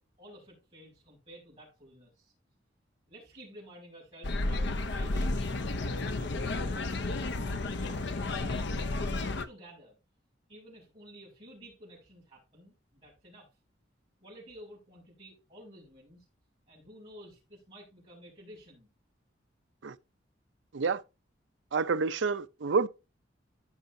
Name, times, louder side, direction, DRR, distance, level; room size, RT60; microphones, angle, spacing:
voice 1, 0.0-2.3 3.1-5.8 6.1-7.1 7.4-8.7 9.0-10.0 10.5-13.5 14.2-16.2 16.7-18.9, equal, 30° right, 5.9 m, -52 dB
sound 1, 4.2-9.4, left 2 dB, 65° left, 0.8 m, -32 dB
voice 2, 21.7-22.9, right 4 dB, 75° right, 0.6 m, -28 dB
15.5 x 5.6 x 2.7 m
head